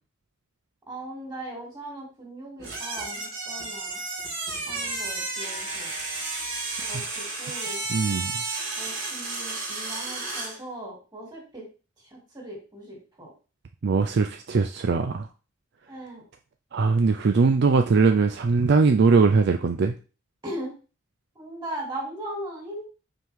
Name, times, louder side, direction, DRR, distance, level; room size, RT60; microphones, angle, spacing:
voice 1, 0.9-4.0 4.7-5.9 6.8-7.8 8.8-11.7 12.0-13.3 15.9-16.2 20.4-20.8 21.3-22.8, right 1 dB, 20° right, -2 dB, 2.8 m, -38 dB
degonfl long racle, 2.6-10.6, right 3 dB, 85° right, 3.1 m, -32 dB
voice 2, 7.9-8.3 13.8-15.3 16.7-19.9, right 4 dB, 55° right, 6 dB, 0.4 m, -21 dB
6.0 x 4.6 x 3.6 m, 0.34 s
head